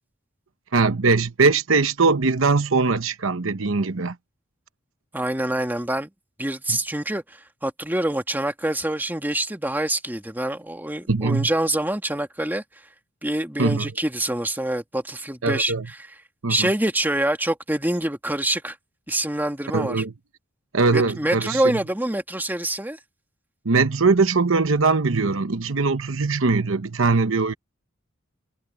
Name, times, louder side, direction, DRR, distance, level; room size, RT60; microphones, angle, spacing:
voice 1, 0.7-4.2 6.7-6.8 11.1-11.5 13.6-13.9 15.4-15.8 16.4-16.7 19.7-20.1 20.7-21.6 23.6-27.5, right 4 dB, 70° right, 1.0 m, -21 dB
voice 2, 5.1-6.1 6.4-12.6 13.2-16.0 16.5-18.8 19.1-20.0 20.9-23.0, right 1 dB, 10° right, 1.9 m, -25 dB
head